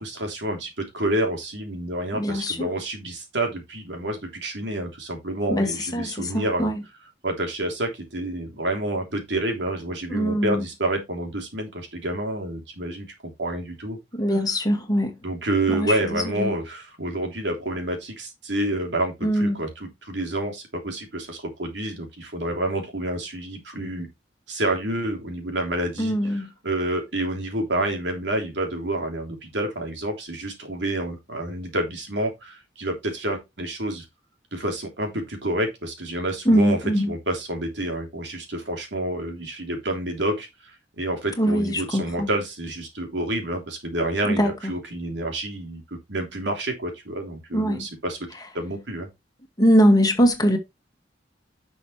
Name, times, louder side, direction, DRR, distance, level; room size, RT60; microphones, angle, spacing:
voice 1, 0.0-6.7 7.2-13.1 13.4-14.0 14.3-14.6 15.2-24.1 24.5-34.0 34.5-48.2 48.5-49.1, right 1 dB, 70° right, 3.2 m, -29 dB
voice 2, 2.2-2.7 5.5-5.7 5.9-6.1 6.3-6.7 10.1-10.5 14.2-15.1 15.8-15.9 16.4-16.5 19.2-19.6 26.0-26.5 36.5-37.1 41.4-42.3 44.4-44.5 47.5-47.8 49.6-50.6, equal, 20° left, 2.0 m, -21 dB
11.0 x 6.1 x 3.2 m
head